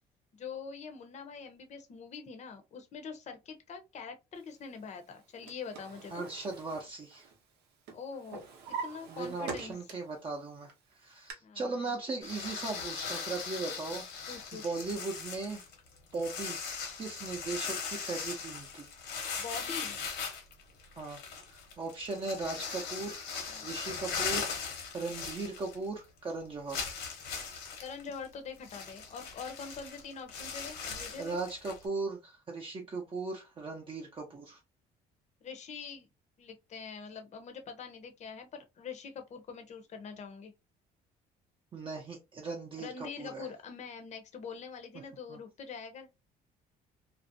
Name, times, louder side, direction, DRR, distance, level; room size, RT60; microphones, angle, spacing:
voice 1, 0.3-6.3 7.9-8.5 8.8-9.8 11.4-11.6 14.3-14.7 19.4-20.0 23.4-23.8 27.8-31.4 35.4-36.1 36.4-40.5 42.8-46.1, left 5 dB, 45° left, 0.6 m, -44 dB
Drawer open or close, 5.1-7.6 7.9-10.2 10.6-11.3, right 5 dB, 90° right, 0.8 m, -43 dB
voice 2, 6.1-7.3 9.1-14.0 14.5-15.6 16.1-16.7 17.0-18.9 21.0-21.2 21.5-23.3 23.6-26.9 31.2-34.6 41.7-43.5 45.3-45.4, right 3 dB, 30° right, 0.6 m, -38 dB
sound 1, 12.2-26.0 26.3-26.4 26.7-31.9, left 5 dB, 85° left, 1.0 m, -39 dB
2.5 x 2.1 x 2.5 m
cardioid pair, 110°, 17 cm